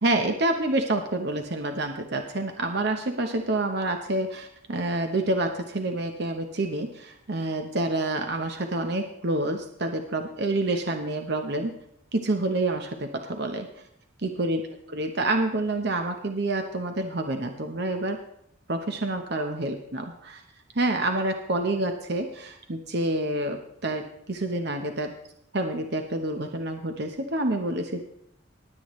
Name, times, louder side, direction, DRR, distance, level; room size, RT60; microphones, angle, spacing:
voice 1, 0.0-11.7 12.1-13.7 14.2-14.6 14.9-18.2 18.7-20.4 20.7-25.1 25.5-28.0, right 2 dB, 55° right, 5 dB, 1.0 m, -28 dB
20.0 x 8.5 x 3.2 m, 0.73 s
head